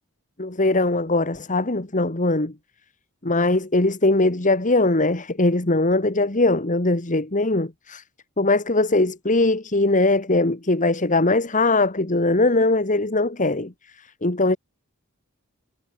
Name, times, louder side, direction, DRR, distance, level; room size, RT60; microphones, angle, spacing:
voice 1, 0.4-2.5 3.2-8.0 8.4-14.6, left 2 dB, 35° left, 1.9 m, -21 dB
head